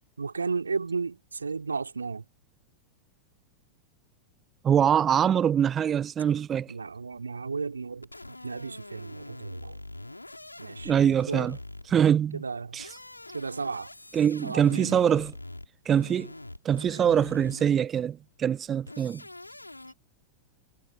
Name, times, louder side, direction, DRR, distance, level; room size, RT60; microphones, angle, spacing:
voice 1, 0.2-2.2 6.7-8.1 8.4-9.8 10.6-10.9 11.3-11.5 12.3-12.8 13.3-13.9 14.4-15.0, right 4 dB, 75° right, 3.1 m, -33 dB
voice 2, 4.6-6.7 10.8-11.6 11.9-12.4 12.7-12.9 14.1-15.3 15.9-16.3 16.6-19.2, right 9 dB, 25° right, 0.8 m, -24 dB
sound 1, 8.0-12.1 12.7-17.9 18.9-19.9, left 2 dB, 85° left, 4.5 m, -44 dB
figure-of-eight pair, 90°, 0 cm